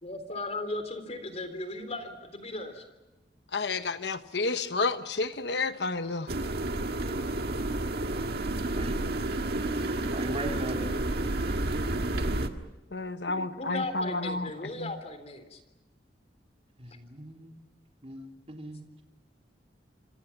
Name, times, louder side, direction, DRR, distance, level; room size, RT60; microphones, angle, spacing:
voice 1, 0.0-2.8 13.4-15.6, left 2 dB, 40° left, 8 dB, 3.6 m, -37 dB
voice 2, 3.5-6.3 12.9-14.5 14.8-14.9, left 3 dB, 70° left, 10 dB, 1.2 m, -30 dB
sound 1, 6.3-12.5, right 2 dB, 65° right, 1.7 m, -30 dB
voice 3, 10.1-10.9 16.8-17.5 18.0-18.9, right 1 dB, 35° right, 1 dB, 3.4 m, -37 dB
27.5 x 26.5 x 5.9 m, 1.1 s
head